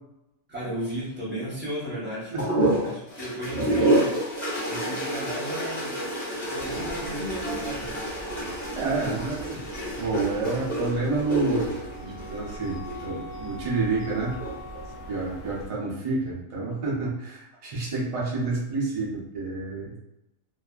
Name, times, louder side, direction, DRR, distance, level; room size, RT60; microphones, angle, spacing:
voice 1, 0.5-2.3 2.8-4.2 4.7-6.0 6.5-7.9, equal, 10° right, -8 dB, 0.8 m, -34 dB
voice 2, 2.3-2.7 8.7-9.6 10.0-11.7 12.0-14.4 15.1-19.9, right 3 dB, 50° right, -4 dB, 0.4 m, -29 dB
sound 1, 2.4-13.1 14.2-14.8, right 1 dB, 20° left, 0.5 m, -28 dB
sound 2, 6.6-15.7, right 1 dB, 50° left, 0.8 m, -44 dB
Wind instrument woodwind instrument, 11.0-15.8, left 1 dB, 75° left, 1.0 m, -43 dB
2.6 x 2.3 x 2.3 m, 0.90 s
omnidirectional pair, 1.4 m